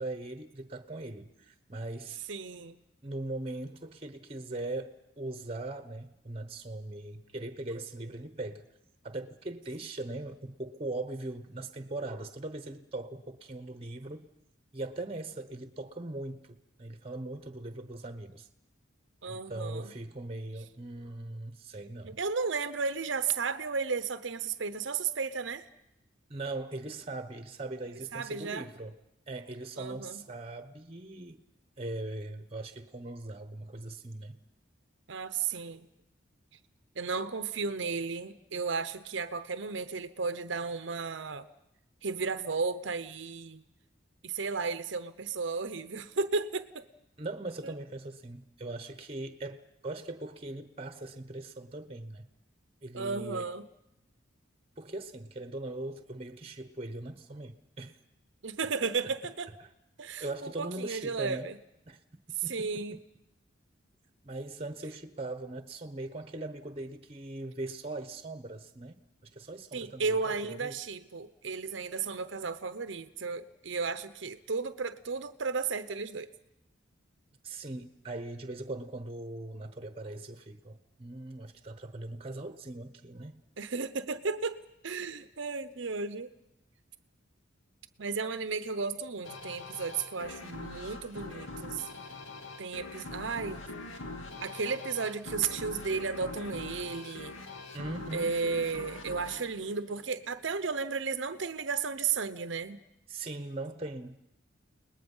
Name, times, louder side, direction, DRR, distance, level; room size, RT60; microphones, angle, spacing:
voice 1, 0.0-2.2 3.0-4.9 5.2-8.6 9.0-14.3 14.7-18.5 19.3-22.2 26.3-28.9 29.3-31.4 31.8-34.4 47.2-52.3 52.8-53.5 54.8-58.0 58.8-58.9 60.2-61.5 61.9-62.0 62.4-63.0 64.2-69.0 69.3-70.7 77.4-83.4 97.7-98.3 103.1-104.2, right 2 dB, 30° right, 9 dB, 1.0 m, -40 dB
voice 2, 2.3-2.8 19.2-19.9 22.0-25.7 28.1-28.7 29.8-30.2 35.1-35.9 37.0-41.5 42.0-43.6 44.2-46.8 47.6-47.7 52.9-53.7 58.4-59.5 60.0-61.6 62.3-63.0 69.7-76.3 83.6-84.6 84.8-86.3 88.0-91.9 92.6-93.6 94.4-97.3 98.1-102.8, right 5 dB, 70° right, 11 dB, 0.8 m, -34 dB
sound 1, 89.2-100.5, left 3 dB, 85° left, 2.6 m, -43 dB
30.0 x 20.0 x 5.5 m, 0.87 s
head